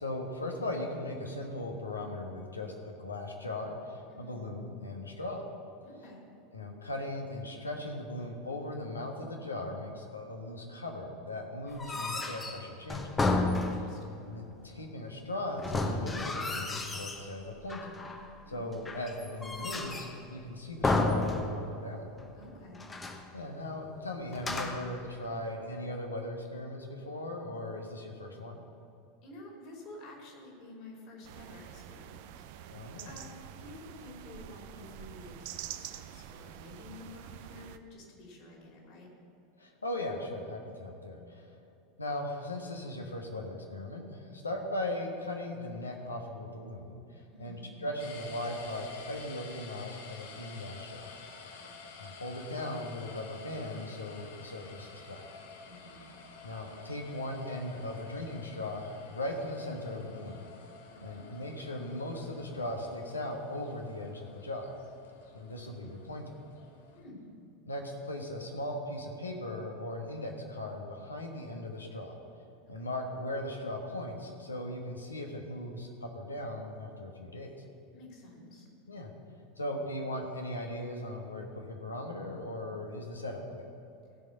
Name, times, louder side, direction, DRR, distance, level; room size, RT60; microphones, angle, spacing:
voice 1, 0.0-5.4 6.5-13.3 14.3-18.0 18.5-22.1 23.3-28.6 32.7-33.1 39.6-41.5 42.0-51.1 51.4-51.6 52.0-55.2 56.4-60.4 61.0-64.7 65.3-66.3 67.6-72.2 72.7-77.5 78.9-79.1 79.6-83.7, left 1 dB, 80° left, 2 dB, 1.3 m, -38 dB
voice 2, 4.1-4.5 5.8-6.2 13.6-14.3 18.4-18.7 22.3-22.9 29.2-32.2 32.5-32.7 33.0-39.1 47.3-47.7 51.5-51.7 55.6-56.1 60.9-61.2 66.9-67.2 72.7-73.0 77.9-78.7, left 2 dB, 45° left, -1 dB, 3.0 m, -51 dB
sound 1, 11.7-14.1 15.6-17.3 17.7-18.3 18.8-20.2 20.8-21.9 22.2-22.3 22.7-23.3 24.3-25.0, left 2 dB, 15° left, 1.0 m, -32 dB
sound 2, 31.2-37.8, right 11 dB, 55° right, 0.5 m, -46 dB
sound 3, 48.0-67.0, left 4 dB, 60° left, 1.1 m, -51 dB
16.0 x 5.3 x 6.7 m, 2.8 s
figure-of-eight pair, 85°, 0 cm